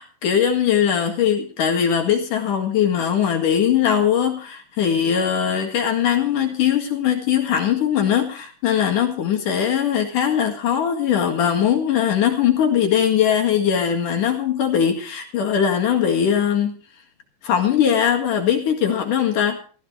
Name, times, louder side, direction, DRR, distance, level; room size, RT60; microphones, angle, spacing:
voice 1, 0.0-16.8 17.4-19.6, left 8 dB, 65° left, 2 dB, 3.4 m, -20 dB
15.0 x 14.5 x 4.8 m, 0.40 s
omnidirectional pair, 4.3 m